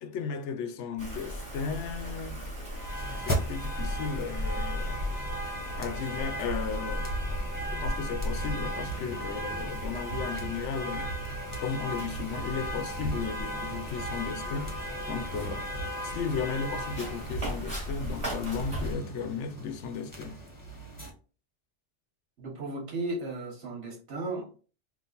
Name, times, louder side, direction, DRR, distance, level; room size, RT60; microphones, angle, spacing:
voice 1, 0.0-2.5 3.2-5.0 5.8-7.1 7.7-15.7 16.0-20.4, left 6 dB, 75° left, 0.9 m, -35 dB
Wind, 1.0-18.9, equal, 25° right, 1.6 m, -37 dB
sound 1, 2.7-21.1, right 1 dB, 20° left, 1.0 m, -37 dB
voice 2, 22.4-24.6, right 2 dB, 70° right, 1.7 m, -35 dB
3.8 x 2.5 x 3.9 m
omnidirectional pair, 1.2 m